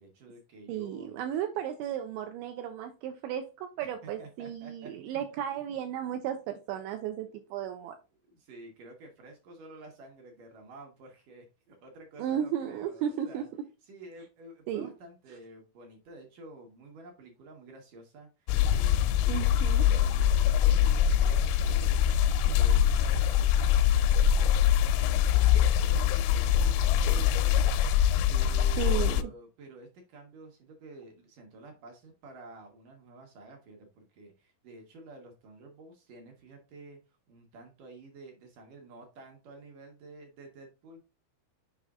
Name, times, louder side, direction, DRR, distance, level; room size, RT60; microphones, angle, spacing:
voice 1, 0.0-1.2 3.8-3.9 4.2-4.9 5.5-5.6 6.2-6.4 8.3-13.5 13.9-19.5 19.9-22.0 22.4-37.0 37.3-41.0, right 2 dB, 65° right, 2.1 m, -50 dB
voice 2, 0.7-8.0 12.2-13.4 14.7-14.9 19.3-19.8 28.8-29.2, right 10 dB, 85° right, 2.6 m, -34 dB
sound 1, 18.5-29.2, left 9 dB, 85° left, 3.2 m, -24 dB
7.5 x 4.9 x 3.7 m
omnidirectional pair, 5.8 m